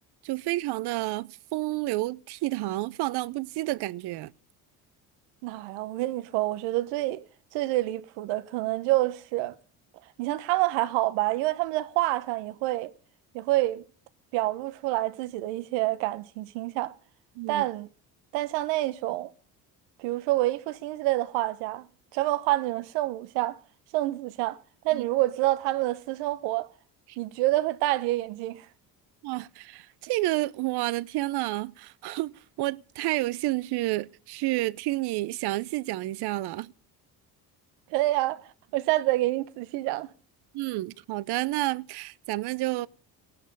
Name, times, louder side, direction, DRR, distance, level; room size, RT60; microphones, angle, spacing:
voice 1, 0.2-4.3 17.4-17.7 24.9-25.0 27.1-27.2 29.2-36.7 40.5-42.9, right 18 dB, 65° right, 0.7 m, -30 dB
voice 2, 5.4-7.2 7.5-9.5 10.2-12.9 13.3-13.8 14.3-16.9 17.5-17.9 18.3-19.3 20.0-21.9 22.1-23.6 23.9-24.6 24.8-26.7 27.2-28.6 37.9-38.4 38.7-40.1, right 17 dB, 80° right, 1.0 m, -27 dB
17.5 x 12.5 x 5.3 m
supercardioid pair, 70°, 43 cm